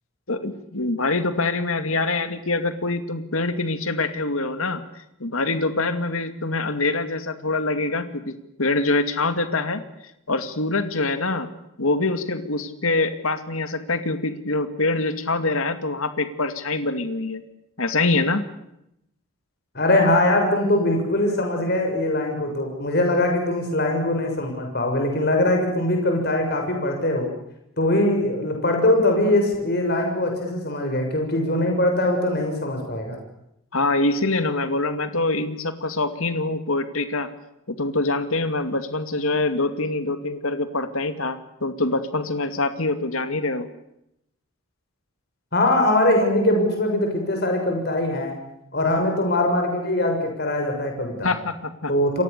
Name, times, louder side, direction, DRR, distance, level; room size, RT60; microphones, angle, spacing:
voice 1, 0.3-4.8 5.2-9.8 10.3-11.5 11.8-17.4 17.8-18.4 33.7-37.3 37.8-43.7 51.2-51.9, left 2 dB, 80° left, 9 dB, 2.4 m, -24 dB
voice 2, 19.7-27.3 27.8-33.2 45.5-48.4 48.7-51.3 51.9-52.2, left 1 dB, 50° left, 2 dB, 6.7 m, -22 dB
30.0 x 23.5 x 6.9 m, 0.81 s
head